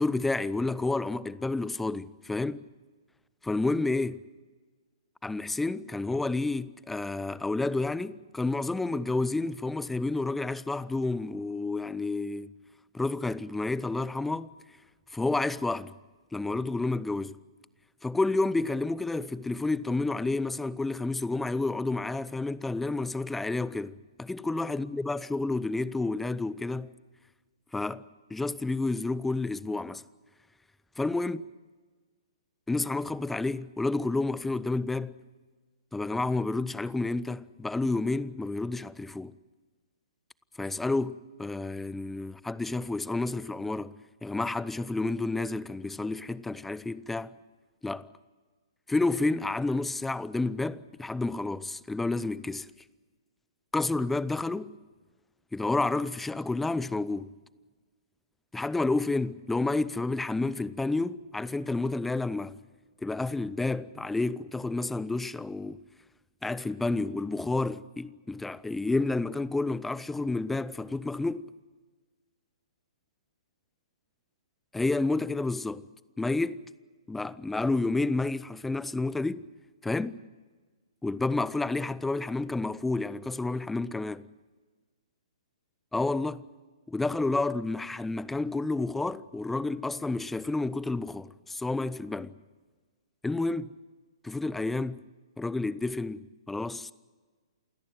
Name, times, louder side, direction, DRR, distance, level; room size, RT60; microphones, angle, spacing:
voice 1, 0.0-2.7 3.4-4.2 5.2-12.5 12.9-14.5 15.1-16.0 16.3-17.4 18.0-26.9 27.7-28.0 28.3-30.0 31.0-31.4 32.7-35.2 35.9-39.3 40.6-44.0 44.2-47.3 47.8-48.1 48.9-52.7 53.7-54.7 55.5-57.3 58.5-62.6 63.0-65.8 66.4-71.5 74.7-75.9 76.2-76.6 77.1-79.5 79.8-80.2 81.0-84.3 85.9-86.5 86.9-92.4 93.2-93.7 94.2-95.0 95.4-96.9, left 3 dB, 5° left, 0.6 m, -30 dB
28.0 x 17.0 x 7.8 m
hypercardioid pair, 125°, 3 cm